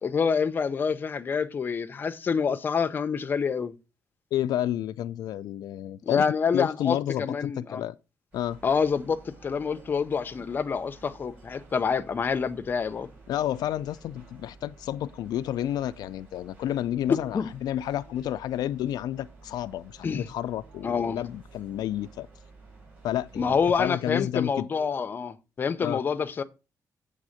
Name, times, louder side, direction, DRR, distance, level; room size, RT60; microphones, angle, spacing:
voice 1, 0.0-3.7 6.0-7.8 8.6-13.1 17.3-17.5 20.0-20.3 20.8-21.2 23.4-26.4, left 6 dB, 30° left, 0.6 m, -27 dB
voice 2, 4.3-6.2 6.5-7.9 8.3-8.6 13.3-22.3 23.0-24.7 25.8-26.0, left 12 dB, 85° left, 0.4 m, -30 dB
sound 1, 8.3-23.9, right 3 dB, 25° right, 3.9 m, -52 dB
8.4 x 3.5 x 6.4 m
cardioid pair, 175°, 7 cm